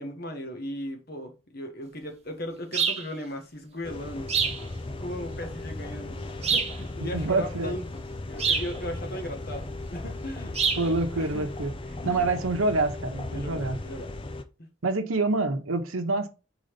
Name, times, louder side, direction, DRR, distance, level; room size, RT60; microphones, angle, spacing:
voice 1, 0.0-4.3 4.8-11.5 12.0-12.4 13.3-14.1, equal, 45° left, 1.4 m, -37 dB
sound 1, 2.7-3.1 4.3-4.6 6.4-6.8 8.4-8.7 10.5-10.9, right 6 dB, 30° right, 1.0 m, -25 dB
sound 2, 3.8-14.4, left 2 dB, 25° left, 0.5 m, -37 dB
voice 2, 7.0-7.7 10.8-11.7 12.0-13.8 14.8-16.3, right 3 dB, 85° right, 1.0 m, -26 dB
4.8 x 4.1 x 5.1 m
head